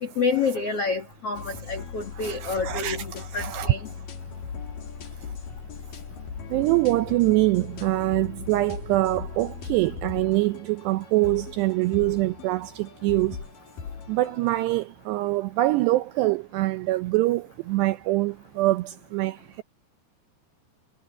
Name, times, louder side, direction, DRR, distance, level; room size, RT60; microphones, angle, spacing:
voice 1, 0.0-3.9, left 4 dB, 75° left, 1.3 m, -28 dB
sound 1, 1.4-14.8, left 6 dB, 50° left, 3.8 m, -39 dB
voice 2, 2.2-3.0 3.3-3.7 6.5-13.4 14.1-19.6, right 18 dB, 85° right, 2.4 m, -24 dB
omnidirectional pair, 5.7 m